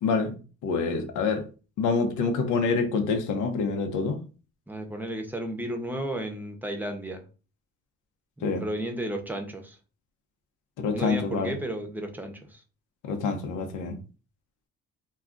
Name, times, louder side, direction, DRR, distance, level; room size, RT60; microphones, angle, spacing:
voice 1, 0.0-0.3 0.6-1.4 1.8-4.2 8.4-8.6 10.8-11.5 13.0-14.0, left 4 dB, 85° left, 0.7 m, -26 dB
voice 2, 4.7-7.2 8.4-9.8 10.9-12.6, right 1 dB, 5° right, 0.6 m, -33 dB
2.4 x 2.3 x 3.7 m
cardioid pair, 90°, 30 cm